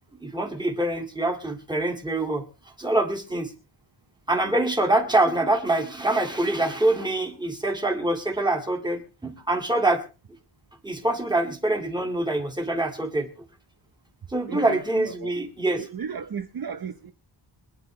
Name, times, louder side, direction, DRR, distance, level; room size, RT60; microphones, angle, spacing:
voice 1, 0.2-2.5 2.8-3.5 4.3-10.0 10.8-13.3 14.3-15.8, right 2 dB, 10° right, 2.1 m, -25 dB
voice 2, 14.5-15.3 15.6-17.1, right 7 dB, 55° right, 0.8 m, -35 dB
25.0 x 9.8 x 3.2 m
wide cardioid pair, 175°, 45 cm